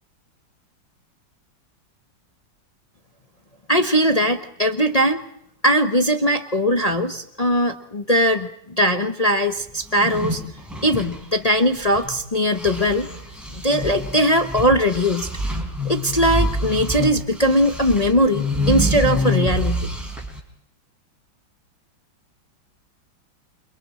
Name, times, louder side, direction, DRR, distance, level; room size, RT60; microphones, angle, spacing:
voice 1, 3.7-5.2 5.6-10.4 10.8-13.1 13.6-15.3 15.8-19.9, equal, 25° left, 5 dB, 0.8 m, -20 dB
sound 1, 9.8-12.2 12.5-20.4, equal, ahead, 4.3 m, -26 dB
29.0 x 23.0 x 4.2 m, 0.73 s
omnidirectional pair, 2.1 m